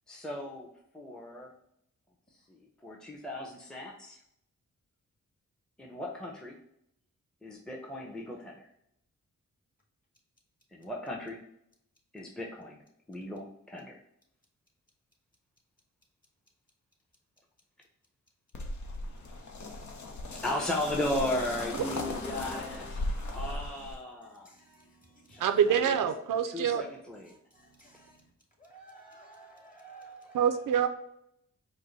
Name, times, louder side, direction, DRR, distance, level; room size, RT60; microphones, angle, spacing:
voice 1, 0.1-0.7 0.9-1.5 2.5-4.2 5.8-6.6 7.4-8.7 10.7-11.4 12.1-12.8 13.1-14.0 20.4-23.0 23.3-24.5 25.3-26.0 26.5-27.3, left 1 dB, ahead, -1 dB, 0.7 m, -36 dB
sound 1, 18.5-23.9, left 2 dB, 65° left, 0.9 m, -37 dB
voice 2, 22.9-23.4 24.4-25.6 27.3-28.2 28.6-30.6, right 3 dB, 25° left, -1 dB, 1.7 m, -54 dB
voice 3, 25.4-26.8 30.3-30.9, right 8 dB, 85° right, 8 dB, 0.5 m, -26 dB
4.9 x 2.2 x 4.0 m, 0.75 s
cardioid pair, 65°, 31 cm